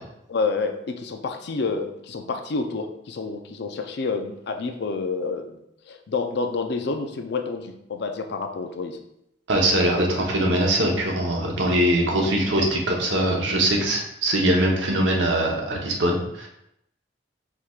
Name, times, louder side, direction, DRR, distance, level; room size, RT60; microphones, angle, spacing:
voice 1, 0.3-5.6 5.9-9.0, left 4 dB, 65° left, 6 dB, 0.5 m, -28 dB
voice 2, 9.5-16.5, right 1 dB, 80° right, -1 dB, 1.0 m, -22 dB
4.8 x 4.4 x 2.4 m, 0.80 s
head